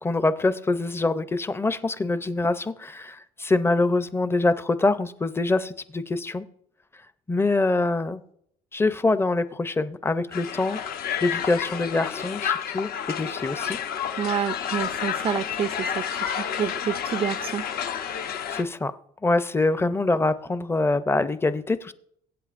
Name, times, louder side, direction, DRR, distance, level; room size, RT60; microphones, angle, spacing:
voice 1, 0.0-6.5 7.3-8.2 8.7-10.8 11.2-13.8 18.5-18.9 19.2-21.9, left 2 dB, 15° left, 13 dB, 0.5 m, -24 dB
Crowd, 10.3-18.6, left 8 dB, 60° left, 0.9 m, -30 dB
voice 2, 14.2-17.6, right 8 dB, 35° right, 14 dB, 0.3 m, -29 dB
23.0 x 8.1 x 2.5 m, 0.72 s
cardioid pair, 100°, 17 cm